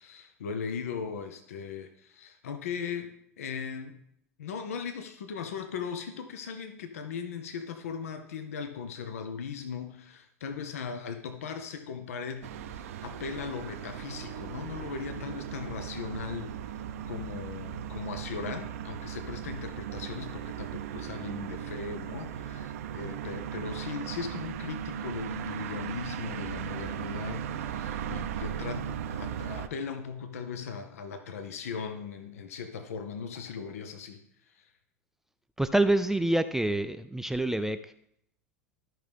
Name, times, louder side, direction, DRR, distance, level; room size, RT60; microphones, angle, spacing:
voice 1, 0.0-3.1 3.4-4.0 4.4-16.6 17.1-34.7, left 6 dB, 70° left, 8 dB, 0.8 m, -38 dB
sound 1, 12.4-29.7, right 8 dB, 65° right, 0.6 m, -37 dB
voice 2, 35.6-37.8, right 1 dB, 5° right, 10 dB, 0.4 m, -26 dB
13.5 x 5.5 x 3.5 m, 0.72 s
figure-of-eight pair, 85°, 8 cm